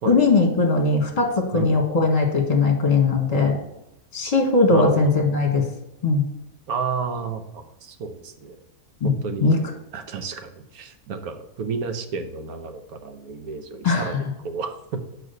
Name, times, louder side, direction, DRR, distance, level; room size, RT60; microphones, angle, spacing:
voice 1, 0.0-3.6 4.1-5.7 6.0-6.2 9.0-9.1 9.4-9.6 13.8-14.2, left 3 dB, 25° left, 2 dB, 1.3 m, -19 dB
voice 2, 4.7-5.1 6.7-8.6 9.0-9.5 9.9-15.0, right 5 dB, 75° right, 8 dB, 1.3 m, -31 dB
6.2 x 4.8 x 6.7 m, 0.87 s
omnidirectional pair, 1.6 m